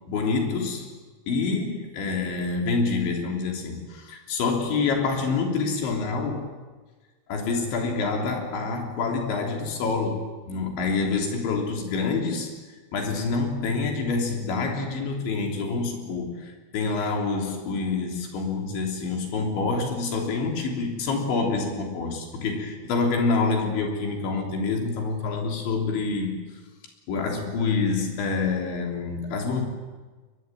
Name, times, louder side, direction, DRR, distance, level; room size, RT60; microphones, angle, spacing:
voice 1, 0.1-0.9 1.3-6.5 7.3-12.5 12.9-26.3 27.1-29.7, left 4 dB, 75° left, 2 dB, 5.7 m, -27 dB
22.0 x 22.0 x 9.2 m, 1.3 s
omnidirectional pair, 5.4 m